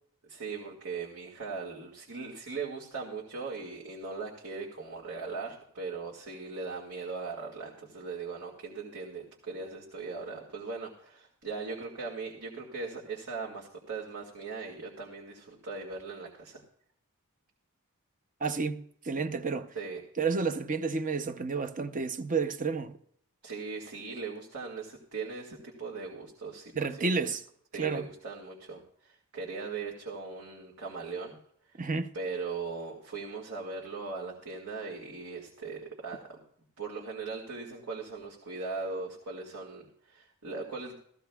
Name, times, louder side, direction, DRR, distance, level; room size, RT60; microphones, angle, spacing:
voice 1, 0.2-16.6 19.8-20.0 23.4-27.3 27.7-31.4 32.1-36.4 36.8-40.9, right 4 dB, 70° right, 2.0 m, -39 dB
voice 2, 18.4-19.7 20.2-23.0 26.8-27.4 27.7-28.1 31.8-32.1, right 4 dB, 35° right, 0.6 m, -31 dB
15.5 x 14.5 x 2.3 m
head